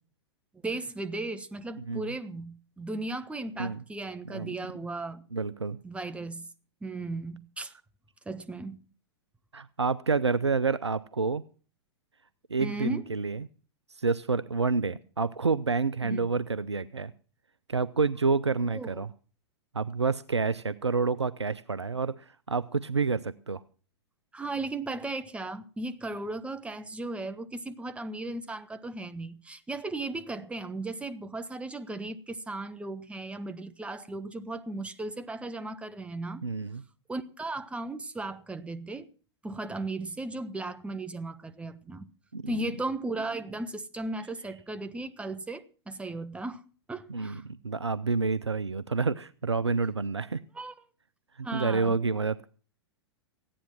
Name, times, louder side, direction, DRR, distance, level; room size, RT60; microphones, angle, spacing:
voice 1, 0.6-5.2 5.8-6.4 6.8-7.7 8.2-8.8 12.6-13.1 16.0-16.3 18.7-19.0 24.3-36.4 37.1-39.1 39.4-42.1 42.5-47.4 50.5-50.7 51.4-52.0, right 2 dB, 10° right, 1.2 m, -36 dB
voice 2, 5.3-5.8 9.5-11.4 12.5-13.5 14.0-17.1 17.7-19.1 19.7-23.6 36.4-36.8 42.3-42.6 47.1-50.4 51.4-52.5, right 4 dB, 90° right, 0.6 m, -28 dB
15.5 x 10.0 x 6.0 m
figure-of-eight pair, 100°, 14 cm